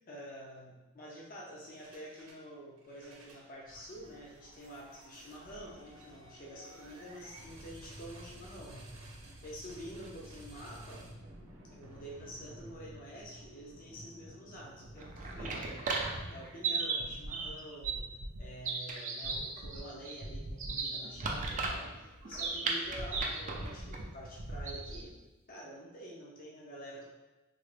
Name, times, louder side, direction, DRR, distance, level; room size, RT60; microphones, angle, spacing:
voice 1, 0.1-9.0 9.4-11.1 11.7-18.1 18.4-25.2 25.5-27.0, equal, 40° left, -3 dB, 0.6 m, -48 dB
sound 1, 1.7-2.4 2.8-19.7, right 1 dB, 70° right, 0.7 m, -53 dB
sound 2, 14.8-25.1, right 3 dB, 35° right, 0.4 m, -36 dB
3.8 x 2.1 x 3.2 m, 1.1 s
head